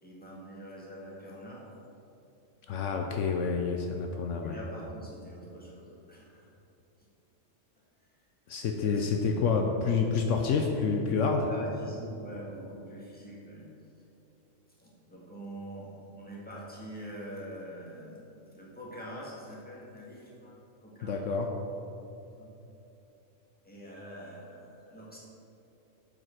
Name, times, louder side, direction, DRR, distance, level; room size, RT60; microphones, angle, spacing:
voice 1, 0.0-1.7 4.3-6.5 8.8-9.6 11.4-13.7 14.8-21.2 22.4-22.5 23.6-25.2, right 1 dB, 5° left, -6 dB, 1.7 m, -45 dB
voice 2, 2.7-4.6 8.5-11.5 21.0-21.5, left 5 dB, 75° left, 3 dB, 0.9 m, -28 dB
7.6 x 5.5 x 5.9 m, 2.8 s
omnidirectional pair, 1.3 m